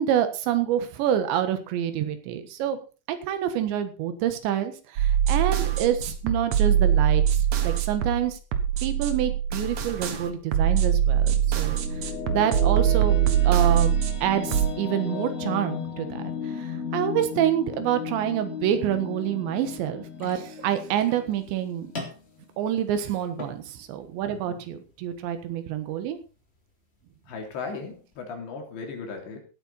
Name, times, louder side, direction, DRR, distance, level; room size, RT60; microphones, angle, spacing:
voice 1, 0.0-2.8 3.1-8.4 8.8-11.8 12.3-13.2 13.4-13.9 14.2-21.9 22.6-26.2, right 10 dB, 85° right, 9 dB, 3.8 m, -27 dB
sound 1, 5.0-14.7, right 10 dB, 60° right, 1.9 m, -23 dB
sound 2, 11.1-22.4, left 6 dB, 55° left, 2.1 m, -35 dB
sound 3, 20.1-28.1, left 2 dB, 15° left, 2.6 m, -45 dB
voice 2, 24.3-24.6 27.3-29.4, left 4 dB, 80° left, 2 dB, 5.5 m, -37 dB
17.0 x 9.0 x 4.3 m, 0.34 s
omnidirectional pair, 5.1 m